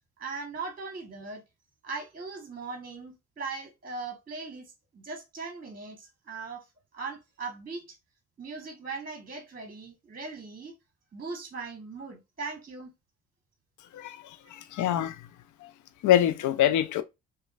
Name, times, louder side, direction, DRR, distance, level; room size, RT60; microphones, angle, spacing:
voice 1, 0.2-1.4 1.8-6.6 6.9-8.0 8.4-10.7 11.1-12.9, right 4 dB, 25° right, 1.1 m, -39 dB
voice 2, 13.9-15.2 15.6-15.7 16.0-17.0, left 11 dB, 65° left, 0.5 m, -25 dB
4.9 x 2.3 x 2.3 m
hypercardioid pair, 50°, 32 cm